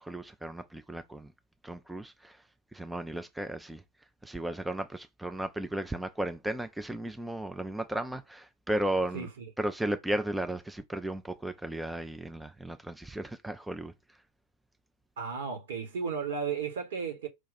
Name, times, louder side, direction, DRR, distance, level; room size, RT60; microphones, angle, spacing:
voice 1, 0.0-1.3 1.6-2.4 2.7-3.8 4.2-9.3 9.6-13.9, right 1 dB, 5° right, 0.4 m, -35 dB
voice 2, 9.1-9.4 15.2-17.3, right 6 dB, 60° right, 1.2 m, -34 dB
4.9 x 2.4 x 4.1 m
figure-of-eight pair, 90°, 0 cm